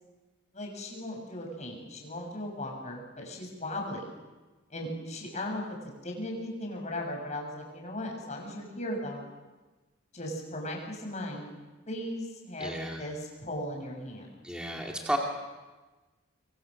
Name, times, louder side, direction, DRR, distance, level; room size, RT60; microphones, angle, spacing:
voice 1, 0.5-4.1 4.7-9.3 10.1-11.5 11.9-14.3, left 1 dB, 35° left, 0 dB, 6.7 m, -37 dB
voice 2, 12.6-13.0 14.4-15.2, right 1 dB, 5° right, -1 dB, 2.4 m, -33 dB
26.5 x 23.0 x 6.6 m, 1.2 s
head